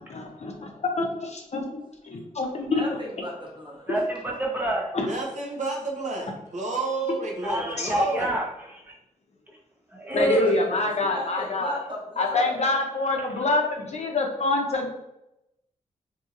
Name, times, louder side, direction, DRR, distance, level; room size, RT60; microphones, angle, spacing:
voice 1, 0.0-2.8 4.9-5.1 7.8-7.9 10.1-11.8 12.2-14.9, left 2 dB, 50° left, 2 dB, 0.6 m, -26 dB
voice 2, 2.6-3.9 10.1-10.7 11.1-12.6, equal, 35° right, -3 dB, 1.1 m, -35 dB
voice 3, 3.9-4.9 7.4-8.9 9.5-9.6 9.9-10.5, right 1 dB, 15° right, -2 dB, 0.9 m, -27 dB
voice 4, 5.0-8.3, right 3 dB, 55° right, -1 dB, 0.7 m, -30 dB
2.7 x 2.7 x 2.4 m, 0.87 s
cardioid pair, 45°, 14 cm